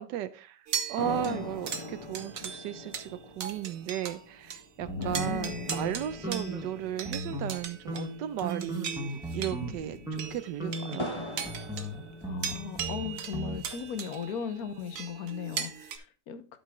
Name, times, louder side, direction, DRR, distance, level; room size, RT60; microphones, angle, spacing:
voice 1, 0.0-11.1, right 11 dB, 85° right, 1.3 m, -35 dB
sound 1, 0.7-4.2 4.5-4.6 5.0-16.0, right 7 dB, 55° right, 1.2 m, -39 dB
sound 2, 1.0-8.6 8.8-8.9 9.4-12.7 13.3-14.2, left 2 dB, 20° left, 1.0 m, -43 dB
sound 3, 4.9-6.7 7.0-7.6 7.9-9.8 10.1-10.3 10.6-13.6, right 1 dB, ahead, 1.3 m, -37 dB
voice 2, 5.0-5.7 12.2-16.6, left 7 dB, 60° left, 1.4 m, -37 dB
11.5 x 4.8 x 3.7 m
omnidirectional pair, 1.8 m